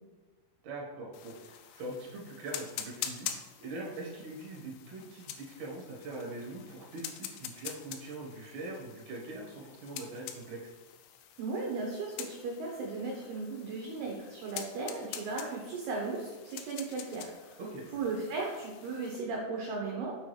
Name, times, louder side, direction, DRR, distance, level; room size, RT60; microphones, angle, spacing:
voice 1, 0.6-3.3 3.6-10.7 17.6-17.9, right 2 dB, 65° right, -3 dB, 2.0 m, -42 dB
sound 1, 1.1-19.2, left 10 dB, 85° left, 2.8 m, -46 dB
voice 2, 11.4-17.6 17.9-20.1, right 3 dB, 80° right, -1 dB, 2.3 m, -36 dB
6.9 x 6.1 x 3.2 m, 1.3 s
omnidirectional pair, 5.7 m